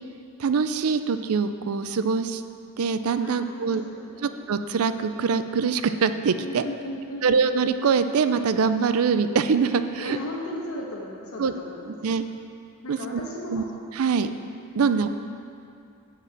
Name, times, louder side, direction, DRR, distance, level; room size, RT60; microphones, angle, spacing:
voice 1, 0.4-2.4 2.8-3.8 4.2-6.6 7.2-10.2 11.4-11.5 12.0-12.2 12.9-13.2 13.5-13.6 13.9-14.3 14.7-15.1, right 5 dB, 80° right, 10 dB, 0.4 m, -23 dB
voice 2, 3.2-4.4 6.4-7.3 10.0-11.9 12.8-13.7 14.8-15.1, left 1 dB, 85° left, -3 dB, 1.3 m, -36 dB
9.9 x 4.8 x 7.2 m, 2.5 s
head